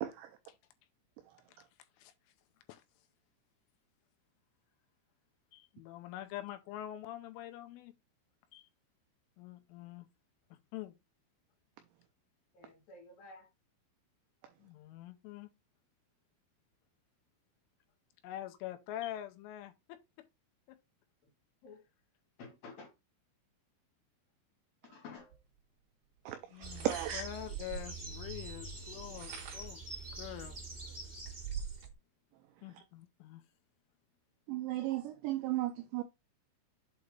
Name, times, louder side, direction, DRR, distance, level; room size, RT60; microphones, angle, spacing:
voice 1, 5.5-7.9 8.5-8.7 9.4-10.1 10.7-10.9 14.6-15.5 18.2-20.0 20.7-20.8 26.5-26.9 27.1-29.8 30.2-30.6 32.6-33.4, left 13 dB, 80° left, 3.1 m, -45 dB
voice 2, 12.5-13.5 21.6-21.8 22.4-22.9 24.8-25.4, left 4 dB, 60° left, 2.7 m, -52 dB
sound 1, 25.3-25.4 26.6-28.0 28.9-29.8 30.4-30.5 30.9-31.9, right 7 dB, 60° right, 2.8 m, -44 dB
voice 3, 26.3-27.2 34.5-36.0, right 13 dB, 85° right, 2.5 m, -35 dB
sound 2, 26.6-31.9, right 3 dB, 5° right, 1.4 m, -46 dB
8.1 x 2.9 x 5.1 m
omnidirectional pair, 5.9 m